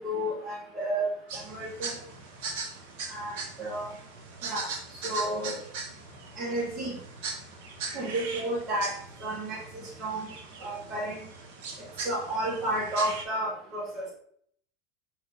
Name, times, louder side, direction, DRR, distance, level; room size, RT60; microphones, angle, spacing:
voice 1, 0.0-2.0 3.1-3.9 4.4-4.7 5.0-5.6 6.4-7.0 7.9-10.3 10.6-11.3 11.8-14.1, right 1 dB, 40° right, -3 dB, 1.3 m, -32 dB
sound 1, 1.3-13.2, right 4 dB, 65° right, 0.8 m, -40 dB
4.8 x 2.9 x 3.2 m, 0.62 s
hypercardioid pair, 80°, 0 cm